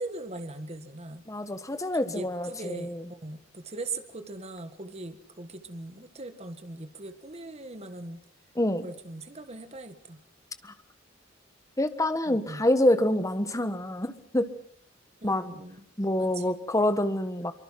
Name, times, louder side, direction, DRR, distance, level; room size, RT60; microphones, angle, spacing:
voice 1, 0.0-1.2 2.0-8.2 8.8-10.2 12.3-12.6 15.2-15.9 16.2-16.5, right 2 dB, 35° right, 9 dB, 1.8 m, -40 dB
voice 2, 1.3-3.1 8.6-8.9 10.6-10.7 11.8-14.5 15.2-15.5 16.0-17.5, left 1 dB, 15° left, 10 dB, 1.4 m, -26 dB
24.5 x 24.0 x 6.0 m, 0.66 s
head